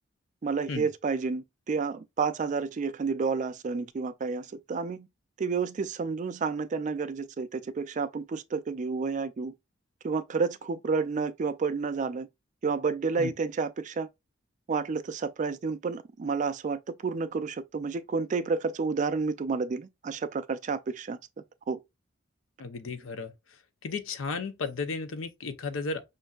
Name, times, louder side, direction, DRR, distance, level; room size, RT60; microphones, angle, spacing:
voice 1, 0.4-5.1 5.4-9.5 10.0-12.3 12.6-14.1 14.7-21.2 21.7-21.8, right 4 dB, 40° right, 0.3 m, -30 dB
voice 2, 22.6-23.3 23.8-26.0, left 4 dB, 85° left, 0.6 m, -34 dB
5.3 x 2.5 x 2.3 m
head